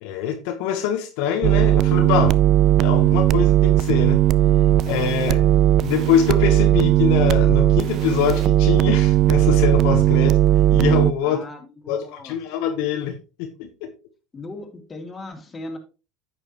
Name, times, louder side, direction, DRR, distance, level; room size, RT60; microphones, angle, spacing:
voice 1, 0.0-2.4 2.7-4.2 4.9-5.5 5.8-10.4 10.7-11.4 11.9-13.9, left 9 dB, 70° left, 1.1 m, -24 dB
sound 1, 1.4-11.1, right 13 dB, 50° right, 0.4 m, -17 dB
voice 2, 11.2-12.4 14.3-15.8, left 2 dB, 25° left, 2.6 m, -38 dB
9.9 x 7.2 x 3.0 m
hypercardioid pair, 85°, 0 cm